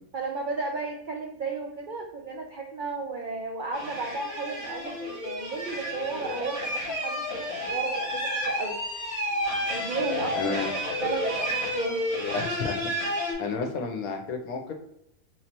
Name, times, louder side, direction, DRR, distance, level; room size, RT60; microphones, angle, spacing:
voice 1, 0.1-8.8 9.7-10.7 11.0-12.1, right 4 dB, 70° right, 0 dB, 0.4 m, -33 dB
sound 1, 3.7-13.3, left 1 dB, 45° right, 1.5 m, -31 dB
voice 2, 10.3-10.7 12.3-12.8 13.4-14.7, left 5 dB, 80° left, 3 dB, 1.1 m, -31 dB
3.8 x 3.1 x 2.9 m, 0.80 s
omnidirectional pair, 1.6 m